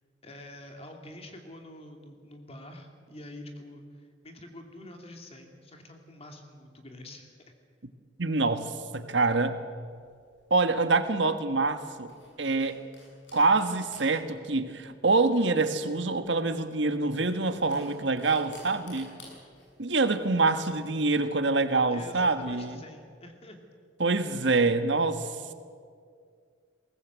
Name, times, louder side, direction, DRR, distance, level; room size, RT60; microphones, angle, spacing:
voice 1, 0.2-7.4 21.9-23.6, left 1 dB, 35° left, 4 dB, 2.6 m, -46 dB
voice 2, 8.2-9.6 10.5-12.1 12.4-12.8 13.3-19.1 19.8-22.8 24.0-25.4, right 3 dB, 70° right, 9 dB, 1.5 m, -26 dB
sound 1, 9.9-22.5, left 2 dB, 75° left, 7.9 m, -56 dB
21.5 x 19.0 x 8.2 m, 2.1 s
head